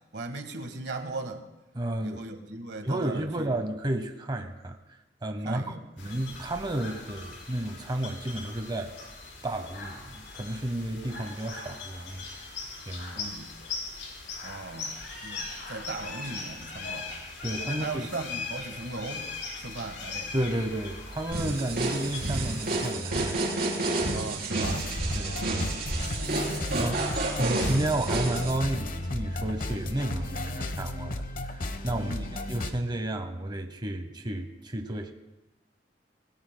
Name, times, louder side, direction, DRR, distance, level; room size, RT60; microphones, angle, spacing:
voice 1, 0.1-1.5 2.0-3.6 5.4-6.3 13.1-13.5 14.4-15.0 15.2-17.1 17.6-19.3 19.5-20.3 24.1-26.7 31.9-32.4, right 3 dB, 75° right, 1.4 m, -38 dB
voice 2, 1.7-2.3 2.8-4.8 5.2-5.6 6.0-8.9 9.4-12.5 12.9-13.3 17.4-18.1 20.3-23.4 25.1-25.4 26.8-31.2 31.5-35.1, right 1 dB, 25° right, 0.8 m, -32 dB
sound 1, 6.0-22.9, left 4 dB, 85° left, 4.2 m, -40 dB
sound 2, 21.3-28.5, right 2 dB, 55° right, 3.9 m, -30 dB
sound 3, 24.6-32.7, left 1 dB, 50° left, 1.1 m, -34 dB
26.5 x 18.5 x 2.2 m
head